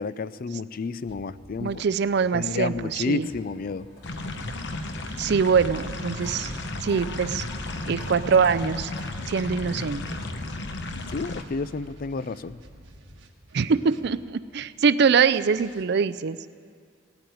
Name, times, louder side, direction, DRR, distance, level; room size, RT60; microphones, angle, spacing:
voice 1, 0.0-1.8 2.3-3.9 11.1-12.6, left 4 dB, 50° left, 16 dB, 0.4 m, -30 dB
sound 1, 1.1-6.1 7.1-14.4 15.2-15.8, right 1 dB, 75° right, 1.4 m, -50 dB
voice 2, 1.6-3.3 5.2-6.5 6.8-7.5 7.9-8.9 9.3-10.2 13.5-16.4, right 5 dB, 60° right, 15 dB, 0.4 m, -23 dB
sound 2, 1.7-10.5 11.0-11.2 12.5-12.6 15.5-15.6, left 1 dB, 80° left, 4.3 m, -50 dB
sound 3, 4.0-11.4, left 2 dB, 65° left, 1.0 m, -34 dB
17.0 x 8.8 x 9.4 m, 2.1 s
head